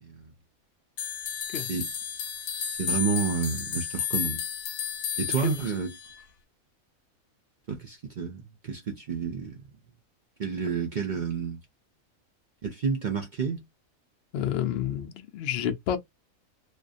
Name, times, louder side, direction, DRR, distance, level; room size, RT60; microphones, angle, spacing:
voice 1, 0.0-0.3 1.6-1.9 2.7-4.4 5.2-5.9 7.7-9.6 10.4-11.6 12.6-13.6, right 6 dB, 60° right, 0.4 m, -30 dB
sound 1, 1.0-6.2, left 8 dB, 85° left, 1.0 m, -33 dB
voice 2, 14.3-16.0, left 9 dB, 65° left, 0.6 m, -29 dB
2.5 x 2.2 x 2.4 m
omnidirectional pair, 1.4 m